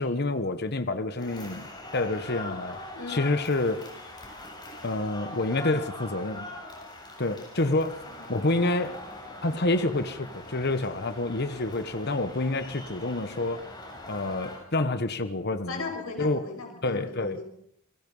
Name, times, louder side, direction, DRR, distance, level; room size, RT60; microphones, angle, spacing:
voice 1, 0.0-2.8 3.1-3.9 4.8-6.5 7.2-8.0 8.3-9.0 9.4-13.6 14.1-15.9 16.2-16.4 16.8-17.4, left 2 dB, 50° left, 1.2 m, -28 dB
sound 1, 1.2-14.6, left 1 dB, 20° left, 7.4 m, -42 dB
voice 2, 2.9-3.3 8.2-8.5 15.7-17.4, left 4 dB, 70° left, 6.3 m, -38 dB
29.0 x 21.0 x 5.6 m
head